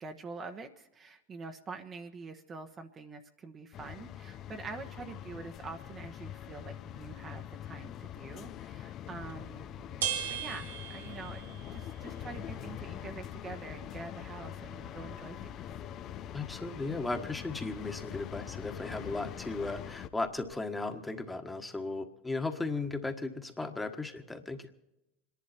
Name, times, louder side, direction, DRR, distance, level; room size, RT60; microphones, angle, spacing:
voice 1, 0.0-9.8 10.3-15.5, right 4 dB, 30° right, 5 dB, 1.1 m, -45 dB
sound 1, 3.7-20.1, left 11 dB, 45° left, 0.6 m, -43 dB
sound 2, 9.0-20.5, right 8 dB, 80° right, 2.1 m, -44 dB
voice 2, 16.3-24.7, left 3 dB, 10° left, 5 dB, 1.5 m, -36 dB
27.0 x 11.0 x 4.4 m, 0.92 s
hypercardioid pair, 95°, 0 cm